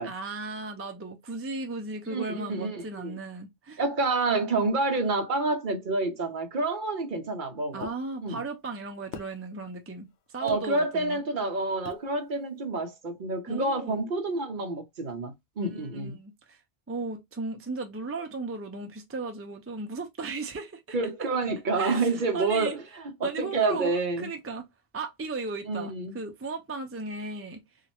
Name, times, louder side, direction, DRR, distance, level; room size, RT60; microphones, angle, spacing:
voice 1, 0.0-3.8 7.7-10.1 10.3-11.2 13.5-14.0 15.6-16.6 16.9-21.0 21.8-22.8 23.2-24.6 24.9-27.6, right 3 dB, 20° right, 0.4 m, -36 dB
voice 2, 2.1-3.1 3.8-7.9 8.2-8.4 10.4-16.1 20.9-24.3 25.6-26.2, right 3 dB, 55° right, 0.8 m, -28 dB
sound 1, 7.8-8.0 9.1-9.3 10.5-10.6 11.8-12.1, left 8 dB, 80° left, 0.9 m, -40 dB
3.0 x 2.4 x 2.9 m
omnidirectional pair, 1.1 m